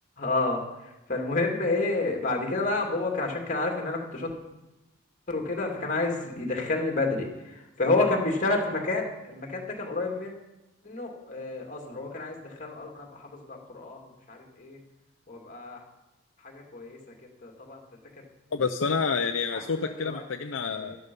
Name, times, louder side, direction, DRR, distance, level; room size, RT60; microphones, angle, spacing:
voice 1, 0.2-0.6 1.1-4.3 5.3-7.3 7.8-10.3 10.8-14.0 14.3-14.8 15.3-15.8 16.4-17.0 17.4-17.8 19.5-20.2 20.8-21.0, left 3 dB, 40° left, 1 dB, 2.3 m, -29 dB
voice 2, 18.5-21.0, left 5 dB, 70° left, 6 dB, 0.6 m, -28 dB
12.0 x 12.0 x 5.3 m, 0.98 s
head